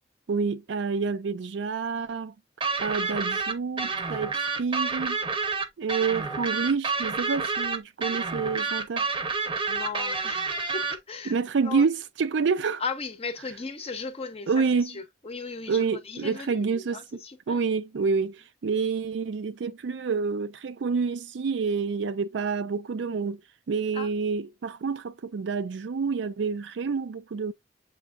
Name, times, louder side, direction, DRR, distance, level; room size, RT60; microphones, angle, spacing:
voice 1, 0.3-2.3 2.8-5.2 5.8-9.1 11.3-12.8 14.5-14.9 15.7-17.0 17.5-23.4 23.7-27.5, right 5 dB, 80° right, 0.4 m, -28 dB
sound 1, 2.6-11.0, right 4 dB, 30° right, 0.7 m, -29 dB
voice 2, 9.7-11.9 12.8-17.6 23.9-24.1, left 4 dB, 35° left, 0.7 m, -37 dB
7.0 x 2.6 x 2.4 m
head